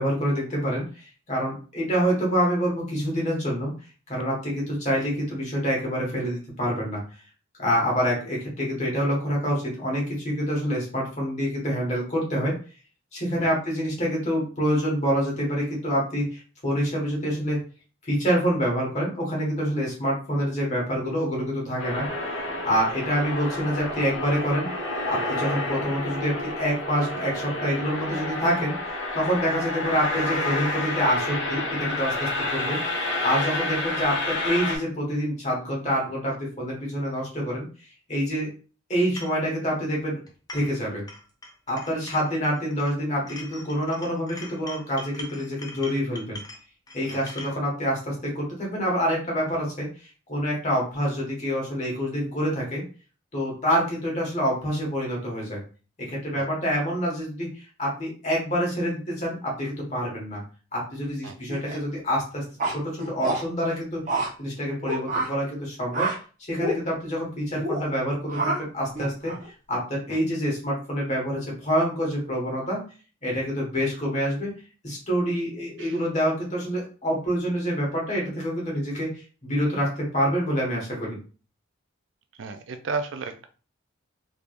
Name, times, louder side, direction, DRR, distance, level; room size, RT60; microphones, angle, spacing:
voice 1, 0.0-3.7 4.1-7.0 7.6-12.5 13.1-17.6 18.0-22.0 22.6-24.7 25.1-32.8 33.2-37.6 38.1-38.5 38.9-40.2 40.5-41.0 41.7-46.4 46.9-49.9 50.3-52.8 53.3-55.6 56.1-60.4 60.7-66.1 66.5-69.3 69.7-72.8 73.2-74.5 74.8-81.2, equal, 35° left, -2 dB, 1.5 m, -26 dB
sound 1, 21.8-34.8, left 2 dB, 60° left, 0.9 m, -29 dB
sound 2, 39.2-39.4 40.3-40.8 41.1-42.9 43.3-47.6, left 2 dB, 20° left, 0.5 m, -42 dB
sound 3, 61.5-61.8 62.6-63.4 64.1-64.3 64.9-65.3 65.9-66.2 66.6-66.8 67.5-67.8 68.3-68.6 69.0-69.5, right 2 dB, 40° right, 0.9 m, -27 dB
voice 2, 82.3-83.5, right 4 dB, 60° right, 8 dB, 0.4 m, -33 dB
3.5 x 3.2 x 2.5 m, 0.37 s
head